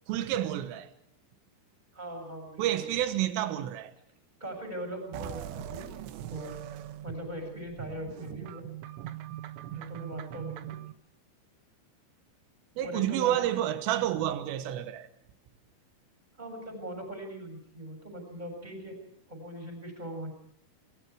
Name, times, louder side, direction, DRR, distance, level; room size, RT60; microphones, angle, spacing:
voice 1, 0.1-0.9 2.6-3.9 12.8-15.1, right 12 dB, 90° right, 3.8 m, -29 dB
voice 2, 1.9-2.8 4.4-5.9 6.3-6.5 7.0-8.7 9.7-10.8 12.8-13.4 16.4-19.0 19.3-20.3, right 1 dB, 10° right, 6.4 m, -40 dB
sound 1, 5.1-10.9, right 12 dB, 75° right, 2.9 m, -41 dB
28.5 x 22.0 x 4.7 m
omnidirectional pair, 5.6 m